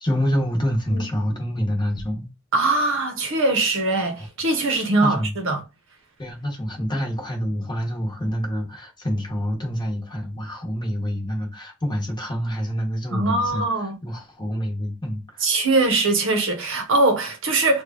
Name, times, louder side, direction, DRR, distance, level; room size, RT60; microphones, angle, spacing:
voice 1, 0.0-2.3 5.0-5.3 6.2-13.6 14.0-15.4, equal, 20° left, 1.0 m, -27 dB
voice 2, 2.5-5.6 13.1-14.0 15.4-17.8, right 2 dB, 60° right, 0.8 m, -21 dB
3.1 x 2.3 x 3.6 m
head